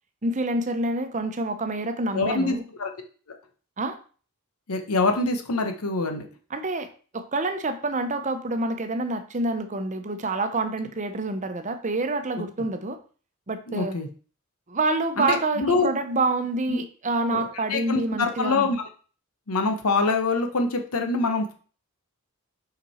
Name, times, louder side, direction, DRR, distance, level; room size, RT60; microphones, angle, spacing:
voice 1, 0.2-2.6 3.8-4.0 6.5-13.0 13.5-14.0 14.7-18.7, right 2 dB, 35° right, 8 dB, 0.8 m, -27 dB
voice 2, 2.1-2.9 4.7-6.3 13.7-14.1 15.2-15.9 16.7-16.8 17.3-17.4 17.7-18.9 19.5-21.5, left 3 dB, 85° left, 6 dB, 1.0 m, -25 dB
5.7 x 5.2 x 4.3 m, 0.40 s
head